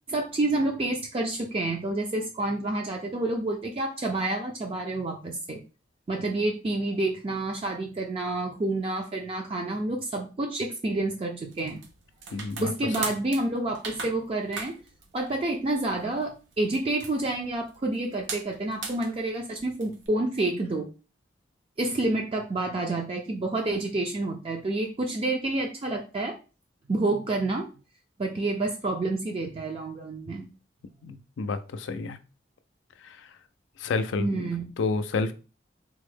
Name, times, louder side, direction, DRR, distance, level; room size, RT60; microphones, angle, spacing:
voice 1, 0.1-5.6 6.1-11.8 12.6-14.8 15.1-20.9 21.8-26.4 26.9-27.7 28.2-30.5 31.1-31.2 34.2-34.7, right 2 dB, 30° right, 2 dB, 0.4 m, -29 dB
sound 1, 11.4-20.1, right 4 dB, 80° right, 0.6 m, -40 dB
voice 2, 12.3-12.7 31.0-32.2 33.0-33.2 33.8-34.4 34.8-35.3, left 3 dB, 90° left, 10 dB, 0.4 m, -29 dB
3.4 x 2.0 x 3.3 m, 0.33 s
head